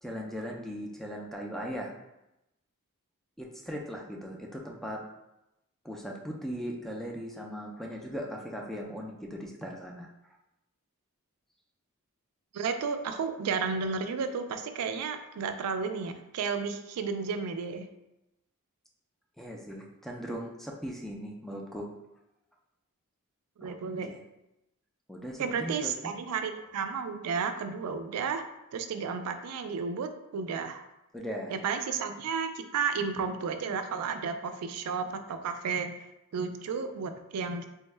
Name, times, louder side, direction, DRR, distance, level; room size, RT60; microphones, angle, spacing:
voice 1, 0.0-1.9 3.4-5.0 5.8-10.1 19.4-21.9 23.6-23.8 24.1-24.2 25.1-26.1 31.1-31.6, equal, ahead, -1 dB, 0.3 m, -38 dB
voice 2, 12.5-17.9 23.6-24.1 25.4-28.4 28.7-30.9 31.5-36.1 36.3-37.7, right 5 dB, 85° right, 8 dB, 0.3 m, -32 dB
3.4 x 2.2 x 3.2 m, 0.90 s
head